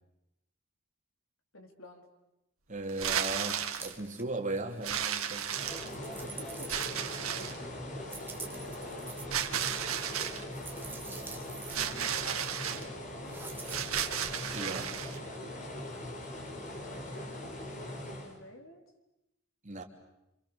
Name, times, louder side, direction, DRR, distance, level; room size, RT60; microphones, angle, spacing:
voice 1, 1.5-2.0 6.2-7.6 8.4-9.5 10.9-11.3 11.6-13.5 16.6-16.7 17.0-18.8, left 1 dB, 70° left, 3 dB, 4.2 m, -52 dB
voice 2, 2.7-5.6 14.5-15.0 19.6-19.8, right 2 dB, 35° right, 3 dB, 2.9 m, -37 dB
sound 1, 2.9-3.9 4.8-6.1 6.7-7.6 9.3-10.4 11.7-12.8 13.7-15.2, right 9 dB, 80° right, 2.0 m, -34 dB
sound 2, 3.1-4.2 4.6-7.2 8.0-9.2 10.1-11.8 12.1-12.3 13.3-14.1, right 4 dB, 10° right, 2.1 m, -47 dB
sound 3, 5.4-18.4, left 1 dB, 40° left, 4.1 m, -41 dB
28.0 x 27.0 x 7.1 m, 0.89 s
head